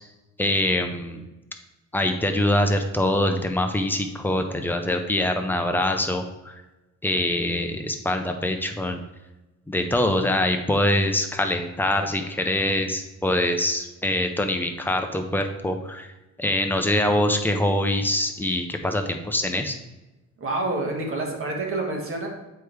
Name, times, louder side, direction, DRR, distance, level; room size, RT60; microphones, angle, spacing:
voice 1, 0.4-1.2 1.9-6.5 7.0-9.0 9.7-16.1 16.4-19.7, left 1 dB, 5° left, 5 dB, 0.6 m, -24 dB
voice 2, 20.4-22.3, right 2 dB, 45° right, 0 dB, 1.5 m, -28 dB
8.2 x 4.6 x 3.4 m, 1.0 s
cardioid pair, 150°, 30 cm